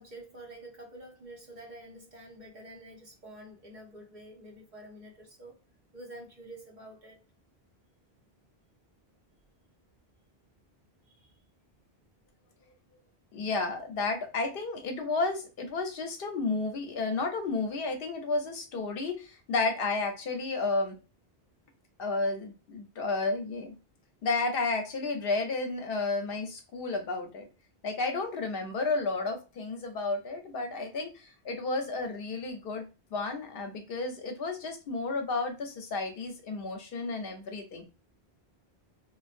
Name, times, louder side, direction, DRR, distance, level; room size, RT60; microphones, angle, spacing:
voice 1, 0.0-5.6 5.9-7.2 11.0-11.4, right 1 dB, 50° right, 0.9 m, -48 dB
voice 2, 13.3-21.0 22.0-23.7 24.2-27.5 27.8-32.8 33.1-37.8, left 3 dB, 65° left, 0.7 m, -32 dB
2.5 x 2.2 x 2.4 m
omnidirectional pair, 1.0 m